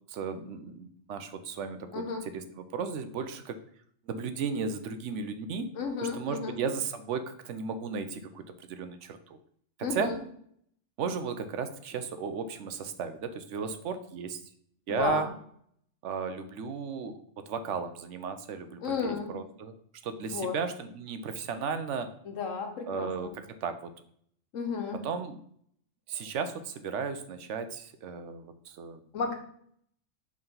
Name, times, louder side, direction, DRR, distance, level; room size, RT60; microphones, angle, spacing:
voice 1, 0.1-2.4 2.7-3.6 4.1-5.7 6.0-9.4 9.8-10.1 11.0-14.4 14.9-15.3 16.0-19.8 20.0-22.1 22.9-23.9 25.0-25.4 26.1-29.0, right 5 dB, 75° right, 9 dB, 0.9 m, -35 dB
voice 2, 5.7-6.5 9.8-10.2 14.9-15.3 18.8-19.3 20.2-20.6 22.2-23.3 24.5-25.0 29.1-29.3, left 5 dB, 85° left, 4 dB, 1.4 m, -33 dB
5.5 x 3.8 x 5.4 m, 0.65 s
omnidirectional pair, 1.3 m